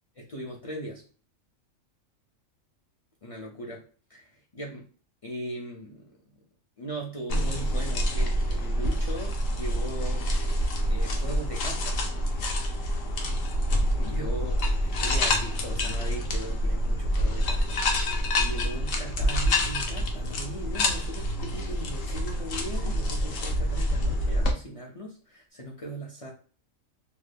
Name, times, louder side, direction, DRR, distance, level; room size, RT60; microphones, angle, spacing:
voice 1, 0.2-1.0 3.2-3.8 4.1-4.9 5.2-6.1 6.8-10.3 10.9-12.1 14.0-26.3, right 1 dB, 55° left, -2 dB, 0.4 m, -39 dB
sound 1, 7.3-24.5, equal, 75° left, 1.0 m, -27 dB
2.7 x 2.2 x 3.3 m, 0.39 s
omnidirectional pair, 1.4 m